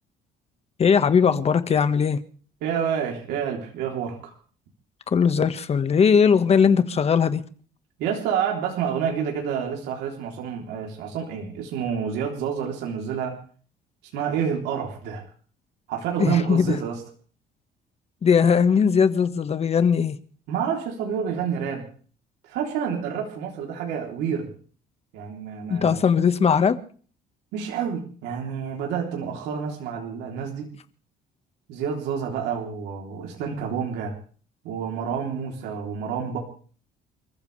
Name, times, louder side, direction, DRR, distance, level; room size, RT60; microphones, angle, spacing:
voice 1, 0.8-2.2 5.1-7.4 16.2-16.8 18.2-20.2 25.7-26.8, left 6 dB, 35° left, 1.6 m, -19 dB
voice 2, 2.6-4.3 8.0-13.4 14.1-15.2 15.9-17.0 20.5-21.9 22.4-24.5 25.1-26.0 27.5-30.7 31.7-34.1 34.6-36.4, right 7 dB, 90° right, 3.5 m, -28 dB
29.0 x 14.5 x 3.4 m
cardioid pair, 110°, 17 cm